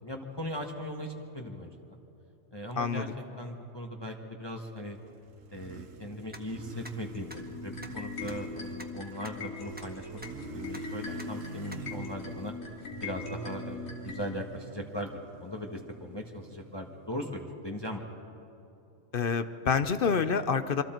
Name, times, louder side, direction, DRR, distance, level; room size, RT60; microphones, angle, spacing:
voice 1, 0.0-1.7 2.5-3.1 3.4-5.0 5.5-10.1 10.5-12.5 13.0-18.0, left 1 dB, 20° left, 1 dB, 1.3 m, -39 dB
Motorcycle, 4.7-17.3, right 6 dB, 75° right, 1.3 m, -46 dB
sound 1, 6.3-6.4 6.8-6.9 7.3-7.4 7.8-7.9 8.3-8.4 8.8-8.9 9.2-9.3 9.8-9.9 10.2-10.3 10.7-10.8 11.2-11.3 11.7-11.8, equal, 5° right, 1.2 m, -44 dB
sound 2, 7.0-14.2, left 4 dB, 80° left, 3.0 m, -41 dB
voice 2, 19.1-20.8, left 6 dB, 50° left, 11 dB, 0.8 m, -27 dB
27.5 x 24.5 x 4.5 m, 2.9 s
omnidirectional pair, 1.4 m